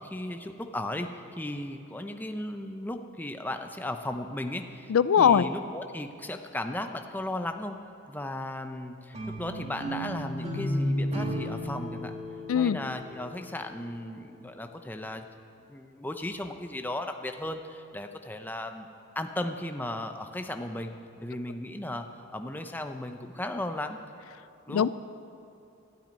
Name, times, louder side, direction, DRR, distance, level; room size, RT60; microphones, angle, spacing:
voice 1, 0.0-4.9 5.2-7.8 8.1-12.2 12.5-15.3 15.7-18.9 19.2-24.0 24.7-24.9, left 1 dB, 10° left, 6 dB, 0.6 m, -36 dB
voice 2, 4.9-5.5 12.5-12.8 24.7-24.9, left 8 dB, 70° left, 16 dB, 0.3 m, -21 dB
sound 1, 9.1-14.2, equal, 30° right, 2.0 m, -34 dB
12.5 x 9.3 x 9.5 m, 2.8 s
head